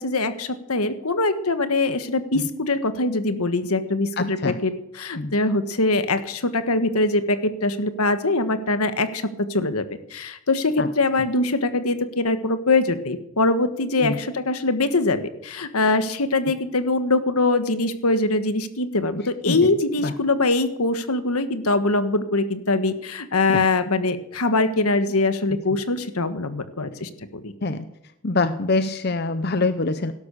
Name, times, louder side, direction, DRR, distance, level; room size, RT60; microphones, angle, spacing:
voice 1, 0.0-9.8 10.1-27.5, left 2 dB, 80° left, 10 dB, 1.4 m, -23 dB
voice 2, 4.2-4.6 5.2-5.3 10.8-10.9 14.0-14.2 19.5-19.7 20.0-20.1 23.5-23.6 27.6-27.9 28.2-30.1, left 3 dB, 45° left, 11 dB, 0.7 m, -24 dB
16.5 x 12.5 x 6.9 m, 0.83 s
head